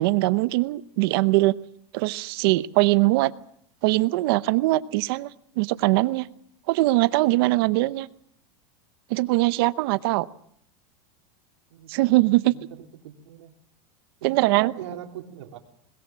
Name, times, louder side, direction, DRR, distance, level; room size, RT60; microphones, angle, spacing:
voice 1, 0.0-1.5 1.9-3.3 3.8-5.3 5.6-6.3 6.7-8.1 9.1-10.3 11.9-12.5 14.2-14.7, right 20 dB, 55° right, 16 dB, 0.8 m, -21 dB
voice 2, 11.7-13.5 14.2-15.6, right 10 dB, 85° right, 3 dB, 3.3 m, -41 dB
21.0 x 21.0 x 7.5 m, 0.69 s
supercardioid pair, 165°, 15 cm